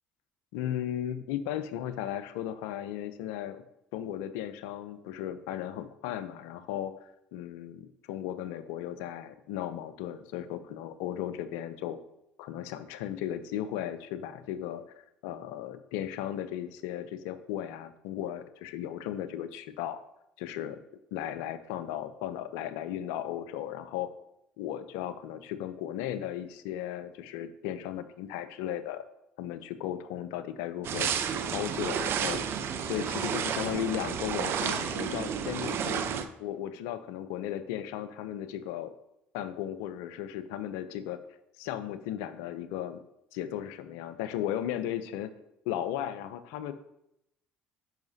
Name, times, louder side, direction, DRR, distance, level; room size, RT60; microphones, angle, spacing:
voice 1, 0.5-3.6 3.9-12.0 12.4-14.8 15.2-20.0 20.4-20.8 21.1-24.1 24.6-29.0 29.4-32.4 32.8-36.0 36.4-38.9 39.3-41.2 41.6-43.0 43.3-45.3 45.7-46.7, left 11 dB, 75° left, 12 dB, 0.5 m, -36 dB
sound 1, 30.8-36.3, right 7 dB, 55° right, 0.6 m, -31 dB
10.5 x 5.7 x 2.7 m, 0.81 s
hypercardioid pair, 65°, 5 cm